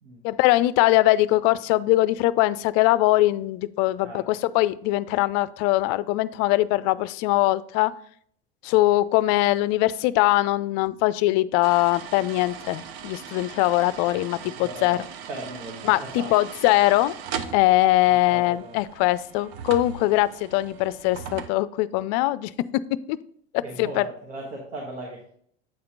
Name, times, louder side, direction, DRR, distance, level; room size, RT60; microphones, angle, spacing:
voice 1, 0.2-7.9 8.6-15.0 15.8-17.1 17.5-22.8 23.1-23.2 23.8-24.1, left 17 dB, 50° left, 17 dB, 0.4 m, -22 dB
sound 1, 11.6-21.5, right 7 dB, 70° right, 0.8 m, -39 dB
voice 2, 14.6-15.0 15.3-16.3 18.3-18.8 23.6-25.3, right 2 dB, 85° right, -1 dB, 1.5 m, -37 dB
8.5 x 4.3 x 3.8 m, 0.63 s
hypercardioid pair, 90°, 33 cm